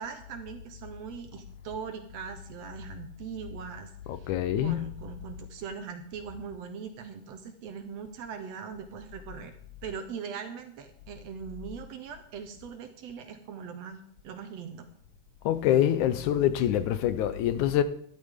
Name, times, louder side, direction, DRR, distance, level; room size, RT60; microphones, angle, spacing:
voice 1, 0.0-9.6 9.8-14.9, right 6 dB, 70° right, 1.8 m, -41 dB
voice 2, 4.1-5.0 15.5-17.8, left 11 dB, 80° left, 2.1 m, -25 dB
12.0 x 11.5 x 3.6 m
omnidirectional pair, 3.5 m